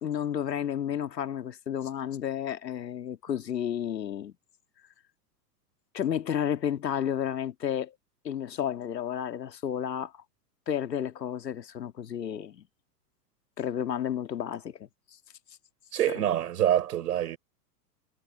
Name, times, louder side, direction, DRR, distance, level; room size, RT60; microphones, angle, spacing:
voice 1, 0.0-4.3 5.9-8.0 8.2-10.2 10.7-12.6 13.6-14.9 16.1-16.2, left 9 dB, 80° left, 1.8 m, -31 dB
voice 2, 15.9-17.4, right 11 dB, 70° right, 4.9 m, -26 dB
hypercardioid pair, 110°, 49 cm